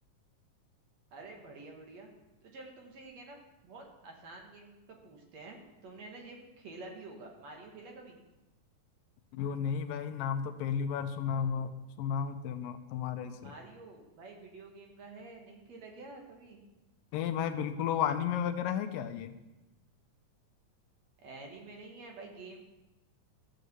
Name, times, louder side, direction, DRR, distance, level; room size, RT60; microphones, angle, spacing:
voice 1, 1.1-2.1 2.4-5.6 5.8-8.2 13.3-16.6 21.2-22.6, right 3 dB, 55° right, 1 dB, 2.4 m, -49 dB
voice 2, 9.3-13.5 17.1-19.3, left 8 dB, 85° left, 8 dB, 2.4 m, -33 dB
13.0 x 7.7 x 6.8 m, 1.0 s
omnidirectional pair, 4.0 m